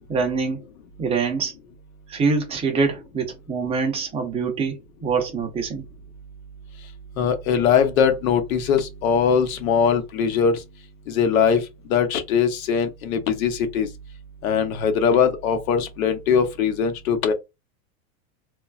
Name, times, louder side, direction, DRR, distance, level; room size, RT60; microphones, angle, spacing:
voice 1, 0.1-0.6 1.0-1.5 2.1-5.8, right 4 dB, 15° right, 0.5 m, -24 dB
voice 2, 7.2-10.6 11.1-13.9 14.4-17.3, left 7 dB, 75° left, 0.9 m, -21 dB
3.0 x 2.3 x 2.4 m
supercardioid pair, 150°, 42 cm